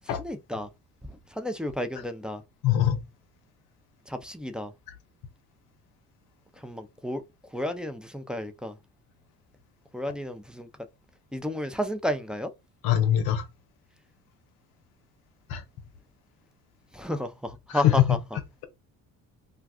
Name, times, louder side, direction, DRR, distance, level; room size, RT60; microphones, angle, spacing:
voice 1, 0.1-0.7 1.4-2.4 4.1-4.7 6.6-7.2 7.5-8.7 9.9-10.7 11.3-12.5 16.9-18.2, equal, ahead, 0.4 m, -32 dB
voice 2, 2.6-3.0 12.8-13.5 15.5-15.6 17.7-18.2, left 11 dB, 85° left, 0.7 m, -22 dB
2.4 x 2.3 x 3.5 m
supercardioid pair, 75°, 37 cm